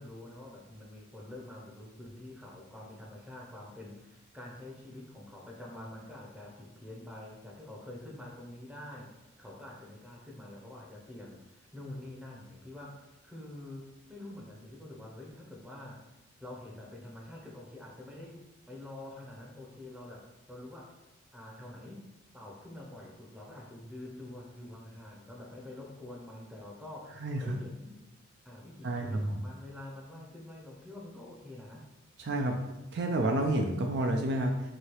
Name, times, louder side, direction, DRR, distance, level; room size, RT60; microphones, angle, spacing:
voice 1, 0.0-16.0 16.4-18.4 18.7-21.0 21.3-22.0 22.3-28.0 28.4-31.9, left 1 dB, 5° right, -2 dB, 0.6 m, -46 dB
voice 2, 27.2-27.6 28.8-29.3 32.2-32.6 32.9-34.6, right 1 dB, 55° right, 3 dB, 0.4 m, -29 dB
3.1 x 2.7 x 4.5 m, 1.1 s
head